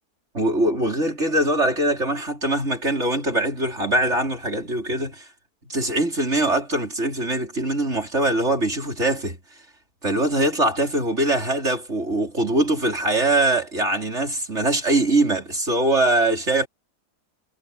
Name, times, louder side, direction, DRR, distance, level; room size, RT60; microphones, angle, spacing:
voice 1, 0.3-5.3 5.6-9.4 10.0-16.7, right 1 dB, 45° right, 4.9 m, -22 dB
omnidirectional pair, 1.7 m